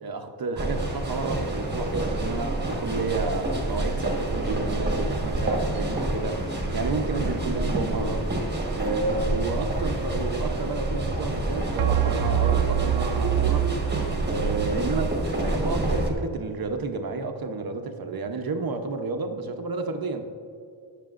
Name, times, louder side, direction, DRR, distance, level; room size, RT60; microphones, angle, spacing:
voice 1, 0.0-8.3 8.7-13.7 14.3-15.1 15.4-20.2, right 3 dB, 45° right, 6 dB, 0.8 m, -31 dB
sound 1, 0.6-16.1, right 1 dB, 20° right, 1.4 m, -28 dB
sound 2, 5.1-5.3 11.8-14.8, right 13 dB, 80° right, 0.6 m, -26 dB
19.0 x 6.6 x 2.5 m, 2.4 s
wide cardioid pair, 165°, 49 cm